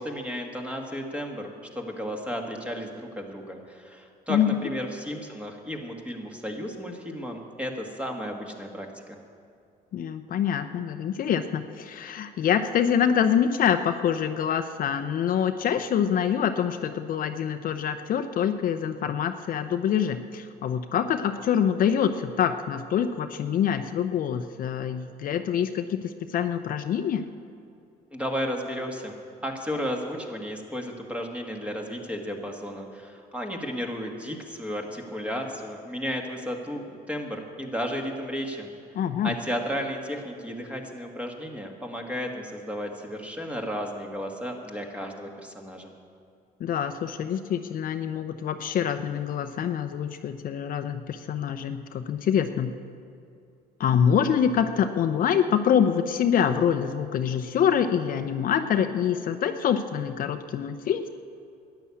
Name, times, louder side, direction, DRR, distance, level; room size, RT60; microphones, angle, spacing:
voice 1, 0.0-9.2 28.1-29.1 29.4-38.7 39.2-45.9, equal, 5° right, 2 dB, 1.9 m, -33 dB
voice 2, 9.9-27.3 38.9-39.4 46.6-52.7 53.8-61.1, left 8 dB, 55° left, 8 dB, 0.7 m, -25 dB
12.5 x 10.0 x 8.5 m, 2.5 s
cardioid pair, 110°, 17 cm